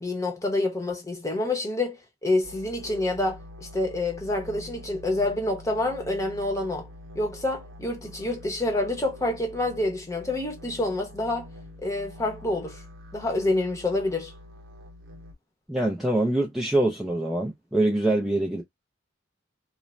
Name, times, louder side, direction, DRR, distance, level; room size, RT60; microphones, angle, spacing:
voice 1, 0.0-6.9 7.1-11.5 11.8-12.8 13.1-14.3, left 2 dB, 15° left, 0.8 m, -27 dB
sound 1, 2.4-15.3, left 1 dB, 85° right, 0.8 m, -45 dB
voice 2, 15.7-18.6, right 1 dB, ahead, 0.4 m, -24 dB
3.1 x 2.1 x 2.4 m
head